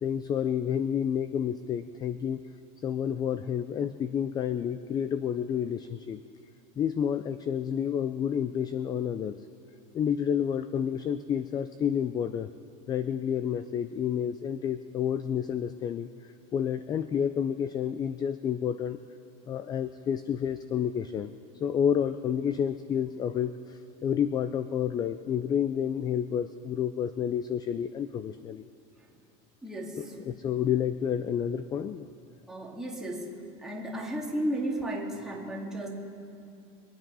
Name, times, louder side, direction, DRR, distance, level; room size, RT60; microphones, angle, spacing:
voice 1, 0.0-2.5 2.8-6.2 6.8-9.4 9.9-12.5 12.9-19.0 19.5-21.3 21.6-28.7 30.0-32.1, left 8 dB, 25° left, 12 dB, 0.3 m, -30 dB
voice 2, 29.6-30.0 32.5-33.3 33.6-35.9, right 1 dB, 5° right, -3 dB, 2.1 m, -33 dB
23.5 x 9.0 x 5.5 m, 2.4 s
supercardioid pair, 145°, 18 cm